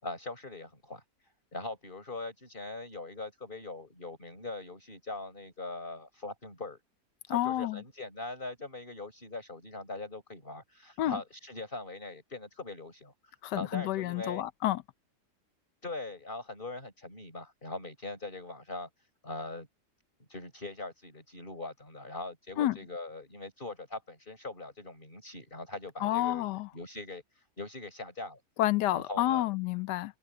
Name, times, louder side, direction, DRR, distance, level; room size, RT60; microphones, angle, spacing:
voice 1, 0.0-6.8 7.3-14.4 15.8-19.7 20.3-26.5 26.7-28.4 28.9-29.5, left 2 dB, 30° left, 6.6 m, -41 dB
voice 2, 7.3-7.8 11.0-11.2 13.4-14.8 22.6-22.8 26.0-26.7 28.6-30.1, left 14 dB, 85° left, 1.3 m, -29 dB
omnidirectional pair, 1.8 m